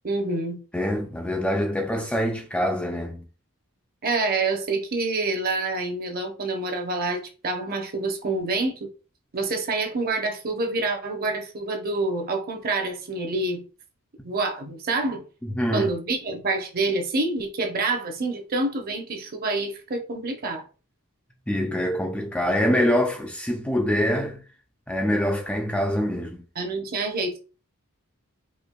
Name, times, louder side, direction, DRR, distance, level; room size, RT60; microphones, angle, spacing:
voice 1, 0.0-0.6 4.0-8.9 9.3-13.6 14.2-15.2 15.7-20.7 26.6-27.4, right 3 dB, 45° right, 0.7 m, -27 dB
voice 2, 0.7-3.2 15.4-15.9 21.5-24.4 24.9-26.4, equal, 5° left, 0.4 m, -25 dB
4.4 x 2.7 x 2.2 m
head